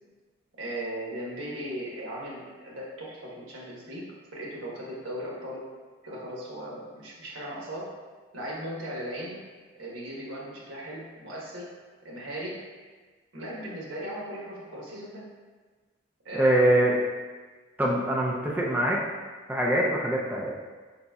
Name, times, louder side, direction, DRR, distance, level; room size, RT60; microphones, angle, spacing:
voice 1, 0.6-4.0 4.3-5.6 6.0-7.9 8.3-9.4 9.7-11.7 12.0-12.5 13.3-15.2 16.2-16.7, equal, 80° right, -5 dB, 1.2 m, -37 dB
voice 2, 16.3-16.9 17.8-19.0 19.5-20.5, right 1 dB, 10° right, -4 dB, 0.4 m, -23 dB
5.1 x 4.0 x 2.3 m, 1.4 s
head